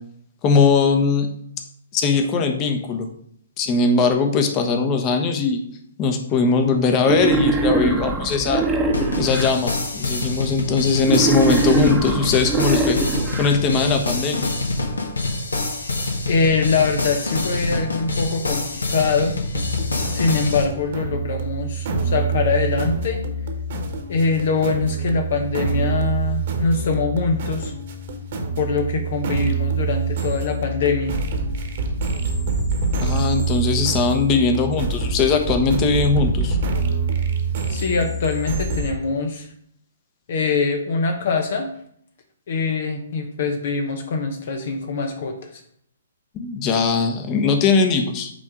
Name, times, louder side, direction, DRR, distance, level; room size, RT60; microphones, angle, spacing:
voice 1, 0.4-1.3 1.9-3.1 3.6-5.6 6.0-8.6 9.2-13.0 13.4-14.5 33.0-36.6 46.3-48.3, left 4 dB, 25° left, 5 dB, 1.0 m, -20 dB
Wild animals, 7.0-9.5 11.0-13.5, right 3 dB, 10° right, 1.0 m, -22 dB
sound 1, 8.9-20.6, left 2 dB, 70° left, 1.3 m, -26 dB
voice 2, 16.3-19.4 20.1-23.2 24.1-27.8 28.6-31.2 37.7-39.5 40.3-41.7 42.5-45.6, left 4 dB, 50° left, 5 dB, 0.8 m, -23 dB
sound 2, 19.5-38.9, right 3 dB, 50° right, 1.4 m, -25 dB
8.6 x 3.5 x 4.9 m, 0.66 s
figure-of-eight pair, 125°, 0 cm